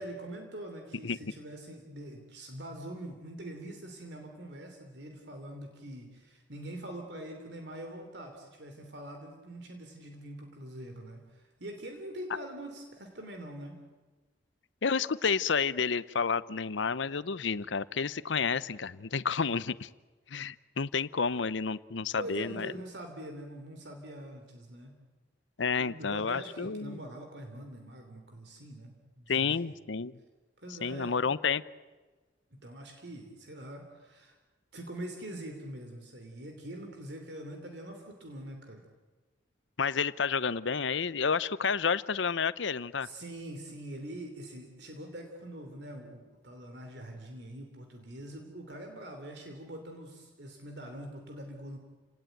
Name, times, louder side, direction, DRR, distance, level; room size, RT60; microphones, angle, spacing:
voice 1, 0.0-13.8 22.2-25.0 25.8-29.6 30.6-31.2 32.5-34.4 34.7-38.8 43.0-51.8, right 1 dB, 65° right, 4 dB, 3.0 m, -44 dB
voice 2, 14.8-19.9 20.3-22.7 25.6-27.0 29.3-30.2 30.8-31.6 39.8-43.1, left 5 dB, 80° left, 17 dB, 0.7 m, -30 dB
29.5 x 18.5 x 9.2 m, 1.3 s
head